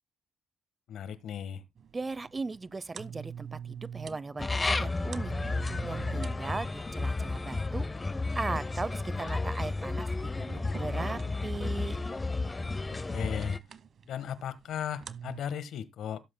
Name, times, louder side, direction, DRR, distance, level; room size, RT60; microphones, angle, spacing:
voice 1, 0.9-1.6 12.9-13.6 14.1-16.2, left 9 dB, 75° left, 1.4 m, -36 dB
sound 1, 1.8-15.4, right 8 dB, 55° right, 1.1 m, -47 dB
voice 2, 1.9-5.3 5.9-7.9 8.3-12.0, right 3 dB, 25° right, 0.7 m, -38 dB
sound 2, 4.4-13.6, left 3 dB, 20° left, 0.7 m, -32 dB
17.0 x 7.7 x 2.2 m
cardioid pair, 90°, 0 cm